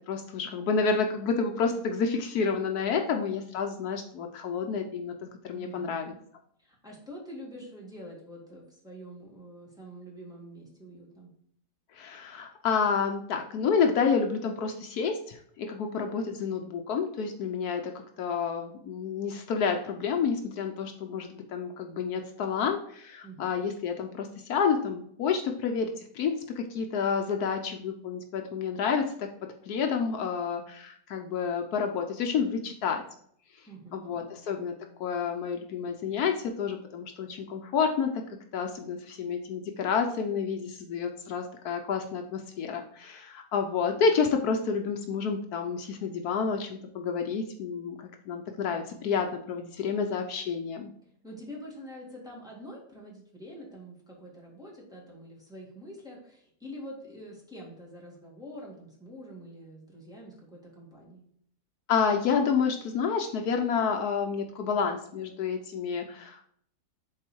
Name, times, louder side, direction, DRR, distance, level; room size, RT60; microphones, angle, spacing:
voice 1, 0.1-6.1 11.9-29.3 29.7-33.0 33.9-34.7 35.0-38.2 38.5-48.0 48.3-50.9 61.9-66.4, left 6 dB, 75° left, 4 dB, 1.2 m, -29 dB
voice 2, 5.5-6.2 6.6-11.3 23.2-23.5 33.7-34.3 51.2-61.2, equal, ahead, -4 dB, 2.0 m, -46 dB
7.3 x 4.1 x 4.4 m, 0.64 s
omnidirectional pair, 1.7 m